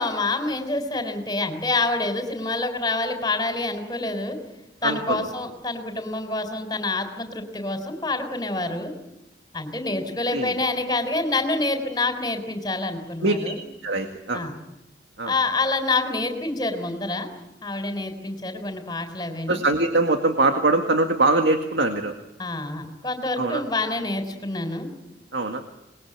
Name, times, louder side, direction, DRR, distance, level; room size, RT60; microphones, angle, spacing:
voice 1, 0.0-4.4 4.8-8.9 9.5-13.6 14.3-14.6 15.2-17.3 17.6-19.6 22.4-24.9, left 2 dB, 25° left, 7 dB, 3.9 m, -27 dB
voice 2, 4.8-5.3 10.3-10.5 13.2-13.5 13.8-14.5 15.2-15.3 19.5-22.2 23.4-23.6 25.3-25.6, right 2 dB, 90° right, 5 dB, 1.9 m, -22 dB
27.0 x 21.0 x 8.8 m, 0.92 s
head